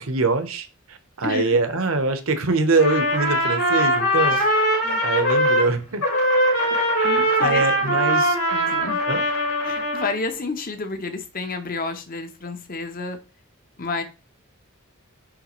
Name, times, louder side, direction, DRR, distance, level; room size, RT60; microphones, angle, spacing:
voice 1, 0.0-4.7 5.0-6.1 7.0-8.4 9.1-9.2, right 3 dB, 65° right, 1.0 m, -24 dB
voice 2, 1.2-1.6 4.3-4.4 4.8-5.0 7.0-8.0 8.5-9.0 9.6-13.2 13.8-14.0, left 3 dB, 40° left, 0.9 m, -30 dB
Trumpet, 2.7-5.7 6.0-10.1, equal, 75° left, 3.7 m, -21 dB
9.9 x 3.4 x 3.1 m
head